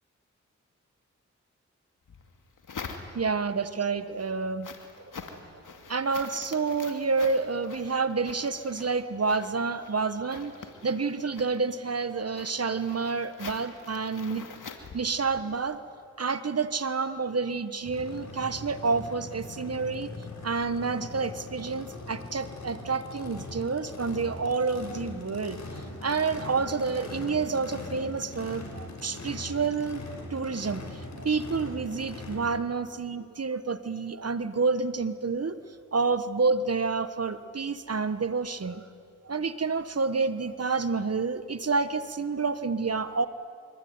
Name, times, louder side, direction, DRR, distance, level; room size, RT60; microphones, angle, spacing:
sound 1, 2.1-3.5 4.0-15.6, left 5 dB, 80° left, 2.6 m, -45 dB
voice 1, 3.1-4.7 5.0-5.4 5.9-14.5 14.9-15.8 16.2-20.1 20.4-25.6 26.0-35.6 35.9-38.8 39.2-43.3, right 4 dB, 50° right, 12 dB, 1.4 m, -29 dB
Race car auto racing / Idling / Accelerating revving vroom, 17.9-32.4, left 2 dB, 60° left, 5.7 m, -41 dB
25.0 x 24.5 x 9.6 m, 2.2 s
cardioid pair, 40°, 31 cm